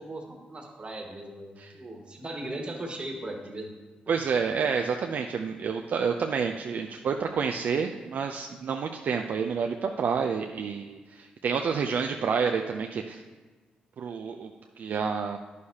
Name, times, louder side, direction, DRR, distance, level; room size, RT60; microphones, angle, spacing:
voice 1, 0.0-3.7, right 1 dB, 35° right, 2 dB, 1.5 m, -38 dB
voice 2, 4.1-13.2 14.0-15.4, right 6 dB, 65° right, 4 dB, 0.4 m, -29 dB
9.5 x 6.6 x 2.8 m, 1.3 s
cardioid pair, 65°, 3 cm